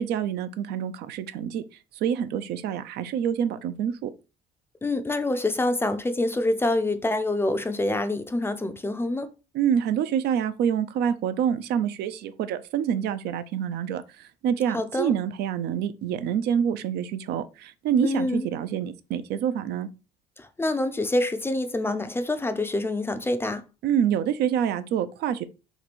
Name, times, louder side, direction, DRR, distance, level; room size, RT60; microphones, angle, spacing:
voice 1, 0.0-1.6 2.0-4.1 9.5-19.9 23.8-25.4, right 8 dB, 75° right, 0.4 m, -27 dB
voice 2, 4.8-9.3 14.7-15.1 18.0-18.5 20.4-23.6, left 2 dB, 15° left, 0.4 m, -26 dB
2.9 x 2.6 x 4.1 m
cardioid pair, 110°, 17 cm